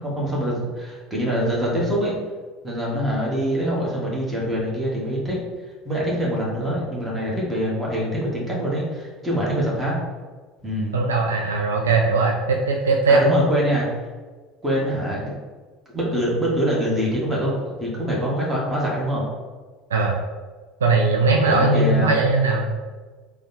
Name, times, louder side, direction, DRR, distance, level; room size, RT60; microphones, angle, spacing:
voice 1, 0.0-2.1 2.6-5.4 5.8-10.0 10.6-11.0 13.1-13.9 14.6-15.3 15.9-19.2 21.5-22.1, equal, 15° right, -5 dB, 1.3 m, -24 dB
voice 2, 10.9-13.2 19.9-20.2 20.8-22.7, right 3 dB, 70° right, 1 dB, 0.3 m, -19 dB
3.5 x 2.1 x 4.0 m, 1.4 s
figure-of-eight pair, 65°, 0 cm